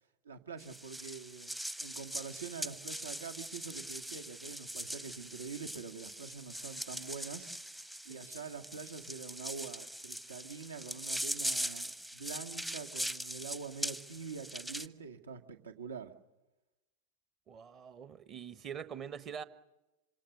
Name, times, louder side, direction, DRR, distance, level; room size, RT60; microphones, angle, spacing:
voice 1, 0.2-1.5 1.8-7.5 8.1-16.1, right 5 dB, 70° right, 6 dB, 1.9 m, -45 dB
sound 1, 0.6-14.9, right 1 dB, 5° right, 0.8 m, -41 dB
voice 2, 17.5-19.4, right 7 dB, 30° right, 13 dB, 1.2 m, -44 dB
27.0 x 26.5 x 6.7 m, 1.0 s
figure-of-eight pair, 90°, 0 cm